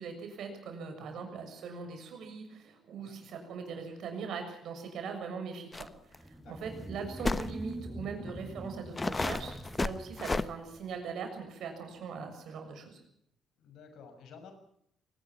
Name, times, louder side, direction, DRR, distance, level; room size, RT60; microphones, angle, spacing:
voice 1, 0.0-13.0, right 5 dB, 65° right, 5 dB, 6.9 m, -41 dB
sound 1, 5.7-5.9 6.1-6.2 7.2-7.5 8.3-8.4 9.0-10.5, left 3 dB, 25° left, 1.2 m, -32 dB
sound 2, 6.1-11.1, equal, ahead, 7.7 m, -44 dB
voice 2, 13.6-14.5, left 6 dB, 65° left, 7 dB, 6.3 m, -52 dB
23.5 x 19.5 x 6.0 m, 0.71 s
hypercardioid pair, 50°, 0 cm